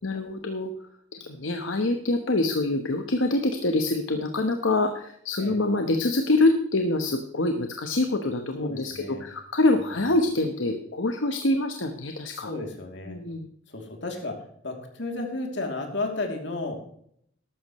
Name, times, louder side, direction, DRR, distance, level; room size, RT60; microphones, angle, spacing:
voice 1, 0.0-0.7 1.1-12.5 13.0-13.5, left 2 dB, 80° left, 5 dB, 1.2 m, -25 dB
voice 2, 8.5-9.2 12.3-13.2 13.7-14.3 14.6-16.7, left 2 dB, 65° left, 2 dB, 3.0 m, -33 dB
13.5 x 12.0 x 3.1 m, 0.67 s
head